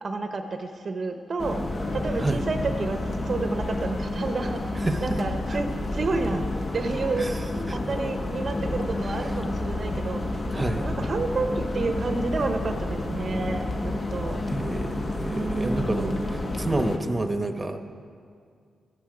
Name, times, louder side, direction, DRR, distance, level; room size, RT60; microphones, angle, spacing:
voice 1, 0.0-1.6 1.9-7.3 7.7-10.4 10.8-14.4 15.3-16.2, right 3 dB, 55° right, 6 dB, 0.8 m, -30 dB
sound 1, 1.4-17.0, left 2 dB, 45° left, 1.3 m, -30 dB
voice 2, 10.5-10.9 14.5-17.8, right 2 dB, 25° right, 7 dB, 0.9 m, -29 dB
12.5 x 10.5 x 4.9 m, 2.2 s
cardioid pair, 55°, 0 cm